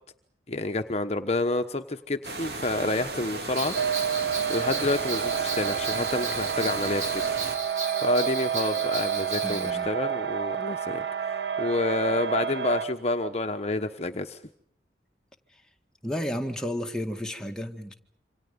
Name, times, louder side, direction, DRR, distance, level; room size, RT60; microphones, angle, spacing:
voice 1, 0.5-3.8 4.5-7.2 8.0-14.4, left 2 dB, 35° left, 7 dB, 1.1 m, -29 dB
sound 1, 2.2-7.6, right 3 dB, 65° right, 2.7 m, -36 dB
Bell, 3.6-9.7, right 4 dB, 45° right, 4.0 m, -35 dB
sound 2, 3.7-12.8, right 8 dB, 80° right, 1.5 m, -29 dB
voice 2, 9.4-9.9 16.0-17.9, equal, 5° left, 2 dB, 2.0 m, -32 dB
28.0 x 26.0 x 5.4 m, 0.65 s
head